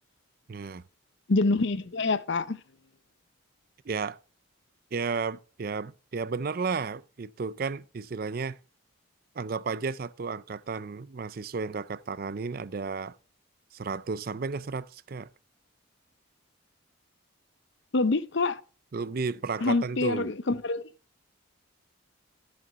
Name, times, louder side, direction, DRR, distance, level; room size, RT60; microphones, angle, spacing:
voice 1, 0.5-0.8 3.8-4.2 4.9-8.6 9.3-13.2 13.7-15.3 18.9-20.3, right 4 dB, 45° right, 0.4 m, -33 dB
voice 2, 1.3-2.6 17.9-18.6 19.6-20.9, left 3 dB, 55° left, 0.6 m, -26 dB
13.5 x 6.9 x 3.6 m
head